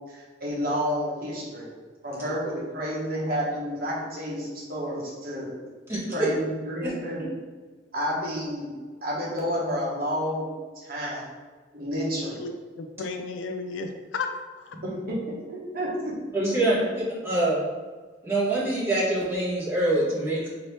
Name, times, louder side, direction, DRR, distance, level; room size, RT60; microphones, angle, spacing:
voice 1, 0.1-1.7 2.0-5.5 5.9-7.2 7.9-8.7 9.0-10.5 10.8-11.3 11.7-12.4 14.8-15.2 15.5-16.1 16.5-16.6, equal, 55° right, -6 dB, 1.2 m, -30 dB
voice 2, 5.9-6.3 16.3-16.7 17.2-17.6 18.2-20.5, right 1 dB, 15° right, -10 dB, 1.5 m, -24 dB
voice 3, 12.3-14.3 14.6-14.7, left 4 dB, 85° left, 6 dB, 0.4 m, -34 dB
4.0 x 2.8 x 3.3 m, 1.4 s
head